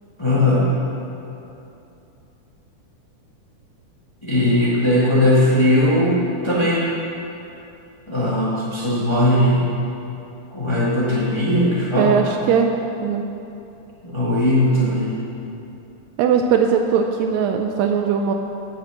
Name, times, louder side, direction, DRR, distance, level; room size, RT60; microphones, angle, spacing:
voice 1, 0.2-0.7 4.2-6.8 8.1-9.7 10.5-12.2 14.0-15.2, left 1 dB, 45° left, -7 dB, 0.3 m, -18 dB
voice 2, 12.0-12.7 13.0-13.2 16.2-18.3, right 7 dB, 90° right, 4 dB, 1.6 m, -19 dB
9.5 x 5.9 x 7.6 m, 2.8 s
omnidirectional pair, 3.8 m